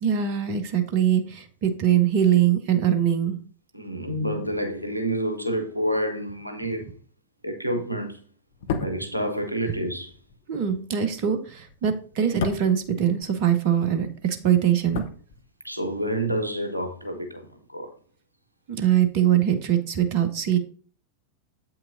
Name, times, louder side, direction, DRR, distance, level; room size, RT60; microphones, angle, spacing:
voice 1, 0.0-3.4 10.5-15.0 18.8-20.6, right 9 dB, 45° right, 0.8 m, -22 dB
voice 2, 3.7-6.9 7.4-8.2 8.8-10.1 15.6-17.9, equal, 85° right, 0.8 m, -28 dB
sound 1, 8.5-13.8 14.1-15.9 16.2-16.3, left 5 dB, 55° left, 0.8 m, -35 dB
7.8 x 5.8 x 2.6 m
figure-of-eight pair, 90°, 0 cm